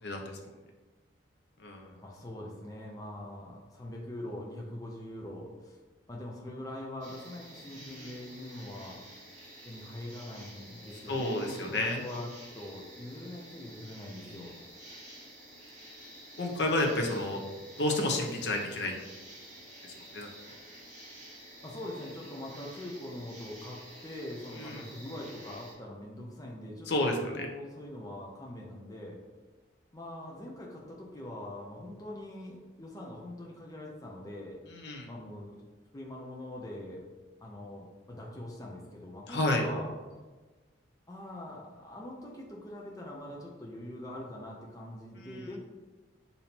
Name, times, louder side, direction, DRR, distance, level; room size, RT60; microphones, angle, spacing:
voice 1, 0.0-0.4 1.6-1.9 7.8-8.1 11.1-12.0 14.3-14.4 16.4-17.4 17.8-18.9 19.8-20.3 24.6-24.8 26.9-27.5 34.7-35.1 39.3-39.6 45.2-45.5, left 1 dB, 60° left, 1 dB, 0.7 m, -31 dB
voice 2, 2.0-5.8 6.1-9.0 9.6-14.5 21.6-29.2 29.9-34.6 35.1-35.6 35.9-37.0 37.4-39.9 41.1-45.6, left 1 dB, 20° left, -3 dB, 0.5 m, -43 dB
sound 1, 7.0-25.7, right 1 dB, 40° right, 1.3 m, -50 dB
6.8 x 2.7 x 2.8 m, 1.3 s
head